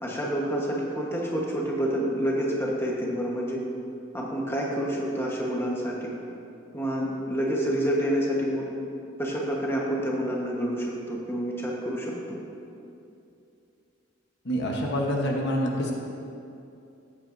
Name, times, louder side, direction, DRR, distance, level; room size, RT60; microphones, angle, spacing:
voice 1, 0.0-3.6 4.1-6.1 6.7-8.7 9.2-12.4, equal, 10° left, -3 dB, 1.2 m, -28 dB
voice 2, 14.4-15.9, equal, 60° left, 0 dB, 1.1 m, -26 dB
14.0 x 8.5 x 2.6 m, 2.7 s
head